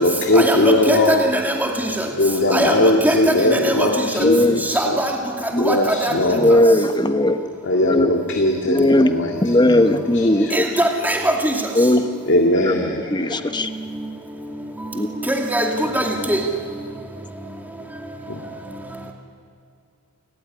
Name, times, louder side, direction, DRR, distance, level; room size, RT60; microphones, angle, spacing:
voice 1, 0.0-1.3 2.2-5.0 5.6-6.7 7.6-10.5 12.3-13.5 18.3-18.5, left 1 dB, 55° left, 2 dB, 2.2 m, -20 dB
voice 2, 0.9-1.7 2.5-2.7 3.0-3.2 3.5-3.9 4.7-5.1 5.6-6.1 10.5-11.5 15.3-15.7 15.9-16.4, right 1 dB, 10° right, 1 dB, 2.5 m, -20 dB
voice 3, 4.2-4.6 5.5-5.6 6.3-7.4 7.8-8.1 8.7-9.1 9.4-10.6 11.7-12.1 12.6-12.7 13.1-13.7 14.9-15.1, left 1 dB, 20° left, 9 dB, 1.1 m, -17 dB
29.5 x 15.0 x 10.0 m, 2.4 s
head